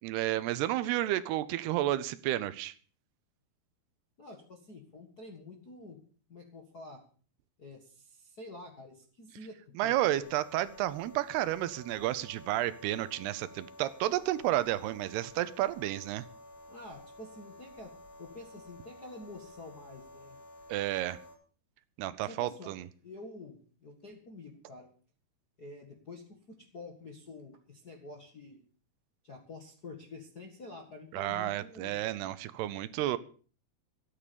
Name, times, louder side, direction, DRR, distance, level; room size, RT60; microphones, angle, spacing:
voice 1, 0.0-2.7 9.8-16.2 20.7-21.2 22.0-22.9 31.1-33.2, right 14 dB, 80° right, 2.7 m, -31 dB
voice 2, 4.2-6.0 6.3-7.0 7.6-10.3 16.7-17.9 18.2-20.4 22.2-22.7 23.0-24.9 25.6-28.6 29.2-32.1, left 2 dB, 45° left, 1.2 m, -48 dB
sound 1, 10.2-21.4, left 1 dB, 80° left, 4.1 m, -52 dB
13.5 x 9.9 x 6.8 m
omnidirectional pair, 4.7 m